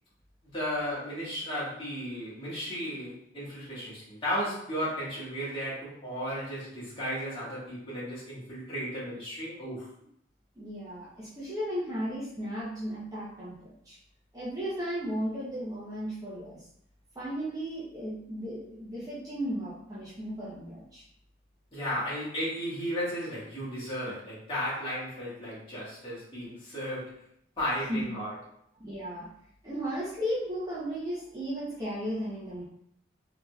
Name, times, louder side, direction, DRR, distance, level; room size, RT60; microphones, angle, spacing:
voice 1, 0.4-9.9 21.7-27.2 27.6-28.3, equal, 30° left, -10 dB, 1.4 m, -34 dB
voice 2, 10.6-14.0 14.3-16.6 17.1-21.0 27.9-28.0 28.8-29.3 29.6-32.7, equal, 20° right, -8 dB, 0.7 m, -35 dB
3.5 x 2.9 x 2.3 m, 0.70 s
head